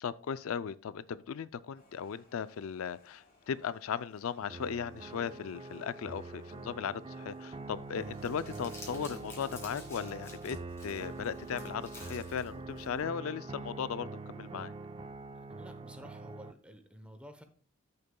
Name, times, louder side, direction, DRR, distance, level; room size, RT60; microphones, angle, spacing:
voice 1, 0.0-10.6 10.8-14.7, left 7 dB, 80° left, 0.4 m, -37 dB
sound 1, 1.7-11.8, left 1 dB, 45° left, 2.8 m, -65 dB
sound 2, 4.5-16.5, right 3 dB, 25° right, 0.3 m, -44 dB
Crumpling crinkling, 7.9-13.0, left 2 dB, 10° left, 2.3 m, -52 dB
voice 2, 15.3-17.4, equal, 5° right, 0.8 m, -51 dB
14.0 x 6.6 x 2.3 m
head